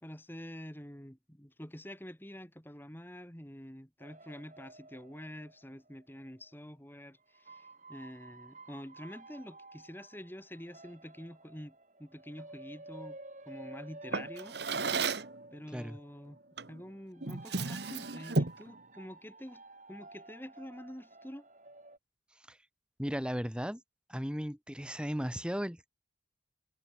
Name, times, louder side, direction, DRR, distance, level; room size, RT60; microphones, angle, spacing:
voice 1, 0.0-11.7 12.0-13.2 13.5-14.6 15.5-16.4 16.7-19.6 19.9-21.5, equal, 10° left, 2.9 m, -47 dB
sound 1, 4.0-6.5 7.3-22.0, right 2 dB, 40° right, 7.6 m, -53 dB
Drawer open or close, 14.1-15.4 16.6-16.8 17.2-18.7, right 3 dB, 60° right, 1.3 m, -33 dB
voice 2, 23.0-23.8 24.1-25.9, equal, 5° right, 1.5 m, -36 dB
head